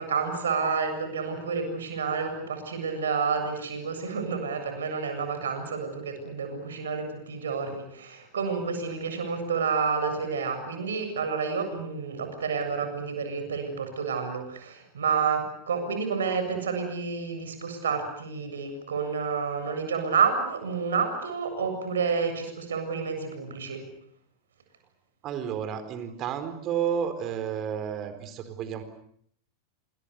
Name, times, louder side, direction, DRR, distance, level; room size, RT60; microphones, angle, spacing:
voice 1, 0.0-23.8, right 5 dB, 65° right, 7 dB, 7.5 m, -29 dB
voice 2, 25.2-28.8, right 8 dB, 35° right, 9 dB, 4.2 m, -31 dB
28.0 x 27.0 x 6.8 m, 0.64 s
figure-of-eight pair, 90°, 0 cm